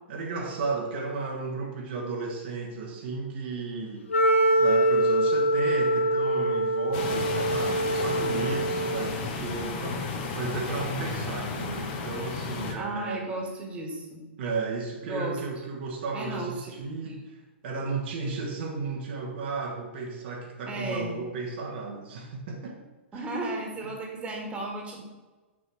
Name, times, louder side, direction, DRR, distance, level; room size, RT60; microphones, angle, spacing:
voice 1, 0.1-4.1 4.6-13.2 14.4-22.8 23.1-23.3 23.8-23.9, right 4 dB, 55° right, 0 dB, 1.6 m, -34 dB
Wind instrument woodwind instrument, 4.1-9.2, right 1 dB, 85° left, 1.1 m, -24 dB
sound 1, 6.9-12.7, left 4 dB, 45° left, 1.5 m, -33 dB
voice 2, 12.8-14.3 15.0-15.4 16.1-16.8 17.0-17.1 20.7-21.1 23.1-25.0, right 2 dB, 15° right, 0 dB, 1.8 m, -34 dB
6.2 x 4.8 x 6.3 m, 1.2 s
hypercardioid pair, 115°, 7 cm